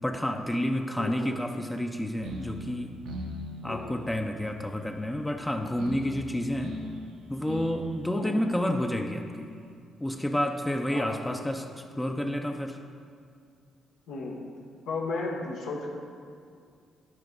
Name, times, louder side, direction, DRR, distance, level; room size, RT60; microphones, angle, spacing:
voice 1, 0.0-2.9 3.6-6.7 7.3-9.5 10.0-11.7 12.0-12.8, left 1 dB, 10° left, 3 dB, 0.5 m, -30 dB
voice 2, 1.0-1.3 3.6-3.9 8.1-8.4 10.9-11.4 14.1-14.3 14.9-15.9, left 3 dB, 85° left, -2 dB, 1.4 m, -34 dB
sound 1, 2.2-9.7, left 1 dB, 90° right, 1.0 m, -42 dB
12.0 x 4.7 x 3.9 m, 2.3 s
cardioid pair, 90°, 0 cm